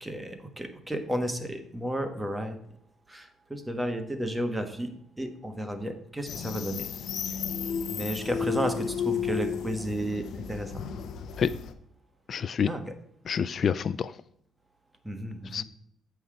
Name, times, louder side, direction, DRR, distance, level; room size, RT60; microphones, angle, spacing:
voice 1, 0.0-2.6 3.1-4.9 5.2-6.9 7.3-7.4 7.9-10.2 10.5-10.7 12.7-12.8 15.0-15.6, right 1 dB, 10° right, 7 dB, 1.3 m, -32 dB
sound 1, 6.3-11.7, left 7 dB, 70° left, 0.7 m, -33 dB
voice 2, 12.3-12.7 13.3-14.2 15.4-15.6, left 7 dB, 55° left, 17 dB, 0.3 m, -27 dB
8.2 x 5.7 x 4.8 m, 0.75 s
cardioid pair, 90°, 0 cm